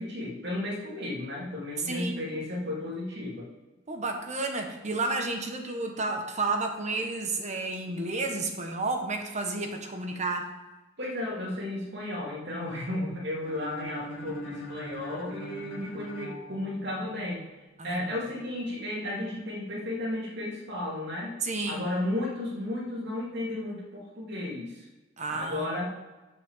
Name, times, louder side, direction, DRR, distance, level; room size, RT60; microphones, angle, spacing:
voice 1, 0.0-3.5 11.0-17.4 17.8-21.4 21.7-24.8 25.3-25.9, left 1 dB, 60° right, -5 dB, 3.1 m, -34 dB
voice 2, 1.9-2.3 3.9-10.5 17.8-18.0 21.4-21.8 25.2-25.9, right 3 dB, 40° right, 4 dB, 1.3 m, -31 dB
sound 1, 13.4-17.3, equal, 65° left, 2.3 m, -42 dB
7.7 x 5.7 x 7.4 m, 1.1 s
head